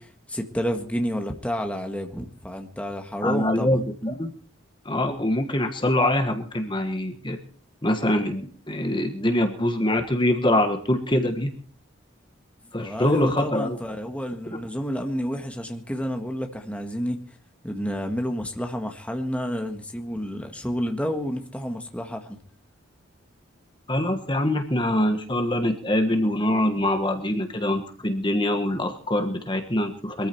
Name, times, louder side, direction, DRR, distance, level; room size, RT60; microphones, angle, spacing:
voice 1, 0.0-3.8 12.8-17.2 17.6-22.4, equal, 5° left, 1.6 m, -30 dB
voice 2, 3.2-4.3 4.8-7.4 7.8-11.5 12.7-13.8 23.9-30.3, left 1 dB, 25° left, 1.4 m, -24 dB
22.0 x 14.0 x 4.5 m
head